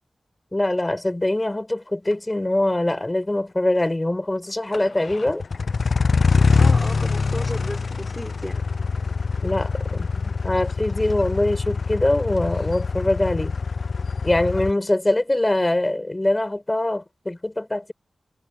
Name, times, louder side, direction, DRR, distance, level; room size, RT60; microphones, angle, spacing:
voice 1, 0.5-5.4 9.4-13.5 14.2-17.9, left 1 dB, 20° left, 6.1 m, -23 dB
sound 1, 2.1-2.2 4.7-14.7, left 4 dB, 65° left, 0.6 m, -24 dB
voice 2, 6.3-8.7, equal, 5° left, 5.5 m, -35 dB
wide cardioid pair, 70°, 0 cm